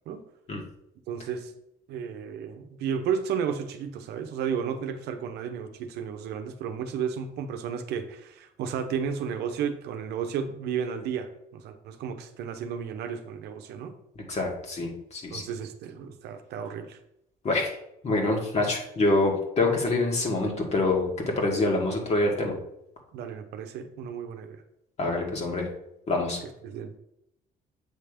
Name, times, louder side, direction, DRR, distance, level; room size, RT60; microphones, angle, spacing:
voice 1, 1.1-1.5 1.9-13.9 15.3-17.0 23.1-24.6 26.4-26.9, right 7 dB, 80° right, 7 dB, 0.8 m, -33 dB
voice 2, 14.2-15.4 17.4-17.7 18.0-21.1 21.4-22.6 25.0-25.7 26.1-26.4, left 2 dB, 40° left, 0 dB, 2.1 m, -26 dB
8.1 x 3.4 x 5.1 m, 0.79 s
cardioid pair, 110°, 17 cm